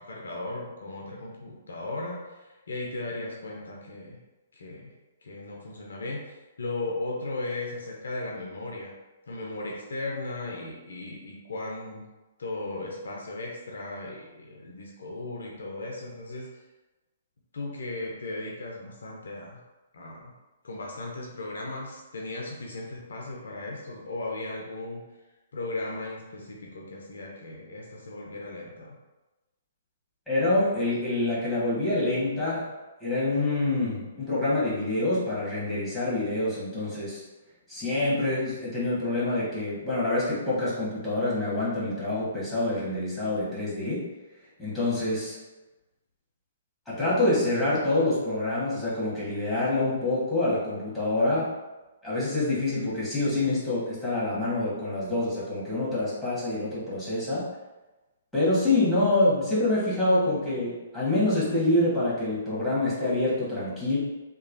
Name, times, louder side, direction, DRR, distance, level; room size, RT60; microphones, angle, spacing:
voice 1, 0.0-4.2 4.5-4.9 5.2-6.2 6.6-8.9 9.3-12.1 12.4-16.6 17.5-19.6 19.9-20.3 20.6-25.0 25.5-29.0, left 2 dB, 65° left, -1 dB, 0.6 m, -36 dB
voice 2, 30.3-32.7 33.0-37.2 37.7-44.1 44.6-45.4 46.9-51.5 52.0-57.5 58.3-64.0, left 2 dB, 5° left, -9 dB, 1.3 m, -26 dB
3.0 x 2.4 x 2.5 m, 1.1 s
figure-of-eight pair, 120°, 0 cm